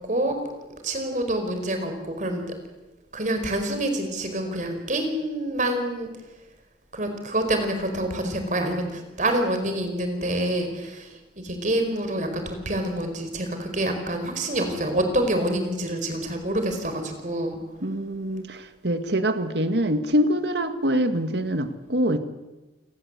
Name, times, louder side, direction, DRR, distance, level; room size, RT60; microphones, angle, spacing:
voice 1, 0.1-0.4 0.8-2.5 3.1-6.1 6.9-11.1 11.4-17.6, right 1 dB, 45° right, 6 dB, 4.8 m, -27 dB
voice 2, 17.8-22.2, equal, 75° right, 8 dB, 2.0 m, -24 dB
30.0 x 18.0 x 8.3 m, 1.1 s
head